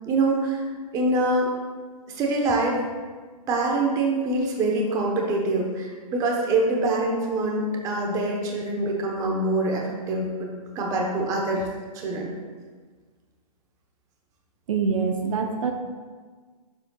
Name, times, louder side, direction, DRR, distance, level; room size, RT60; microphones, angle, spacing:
voice 1, 0.1-1.5 2.1-2.8 3.5-11.6 11.9-12.3, right 2 dB, 15° right, 0 dB, 1.0 m, -25 dB
voice 2, 14.7-15.7, right 5 dB, 55° right, 4 dB, 0.8 m, -25 dB
9.5 x 7.3 x 2.3 m, 1.5 s
hypercardioid pair, 155°, 21 cm